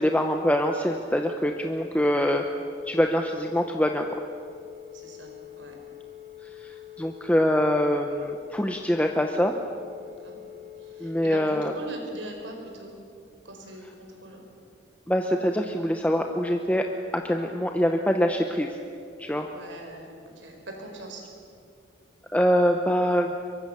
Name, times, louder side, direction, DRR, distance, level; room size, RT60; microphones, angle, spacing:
voice 1, 0.0-2.4 2.9-4.0 6.6-9.6 11.0-11.7 15.1-16.8 17.1-18.8 19.2-19.5 22.3-23.3, equal, 5° left, 4 dB, 0.8 m, -24 dB
voice 2, 2.0-2.4 4.9-5.8 10.0-10.3 10.8-12.9 13.4-14.5 19.5-21.2, right 1 dB, 80° right, 2 dB, 4.9 m, -42 dB
Telephone, 2.8-11.1, left 13 dB, 70° left, 6.1 m, -45 dB
23.0 x 23.0 x 6.8 m, 2.4 s
head